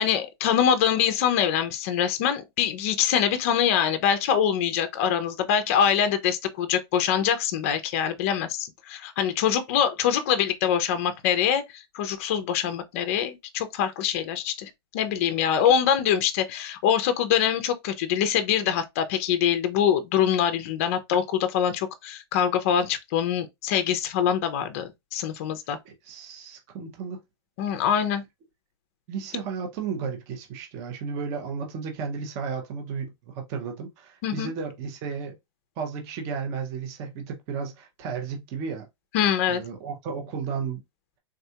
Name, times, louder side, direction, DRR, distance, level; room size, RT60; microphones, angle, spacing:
voice 1, 0.0-25.8 27.6-28.2 34.2-34.5 39.1-39.6, left 9 dB, 30° left, 0.4 m, -24 dB
voice 2, 25.8-27.2 29.1-35.4 35.8-38.9 39.5-40.8, right 5 dB, 20° right, 0.5 m, -33 dB
3.5 x 2.2 x 2.8 m
supercardioid pair, 175°, 14 cm